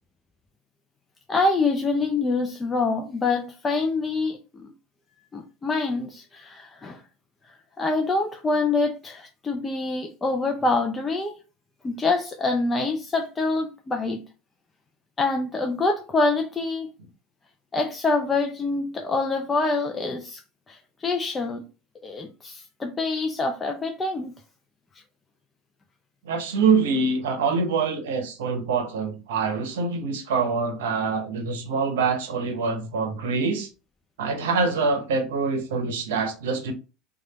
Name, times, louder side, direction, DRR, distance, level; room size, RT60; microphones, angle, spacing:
voice 1, 1.3-4.7 5.3-7.0 7.8-11.4 11.8-14.2 15.2-16.9 17.7-20.4 20.7-21.6 22.0-24.3, left 3 dB, 25° left, 0.4 m, -25 dB
voice 2, 26.2-33.7 34.2-36.7, right 4 dB, 75° right, 0.7 m, -25 dB
3.2 x 2.3 x 2.8 m
hypercardioid pair, 80°, 0 cm